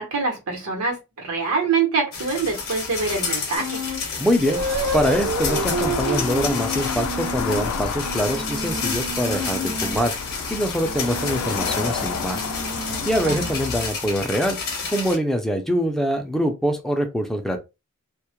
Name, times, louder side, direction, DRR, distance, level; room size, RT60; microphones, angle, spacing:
voice 1, 0.0-3.8 13.2-13.5, right 4 dB, 80° right, 0.9 m, -25 dB
sound 1, 2.1-15.2, left 5 dB, 45° left, 0.7 m, -31 dB
sound 2, 3.5-4.0 4.4-10.1 10.8-13.7, right 2 dB, 55° right, 0.6 m, -30 dB
voice 2, 4.2-4.6 4.9-10.1 10.5-12.4 13.0-14.6 14.9-17.6, equal, ahead, 0.4 m, -24 dB
sound 3, 4.5-13.9, left 5 dB, 75° left, 0.4 m, -31 dB
2.2 x 2.0 x 2.8 m
head